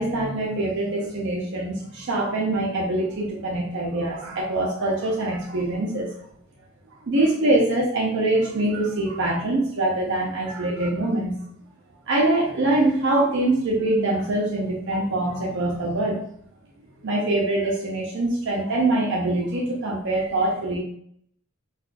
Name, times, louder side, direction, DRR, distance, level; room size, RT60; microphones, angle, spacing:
voice 1, 0.0-6.1 7.0-11.4 12.1-16.2 17.0-20.8, right 2 dB, 60° right, -3 dB, 0.6 m, -24 dB
4.1 x 2.4 x 2.3 m, 0.66 s
head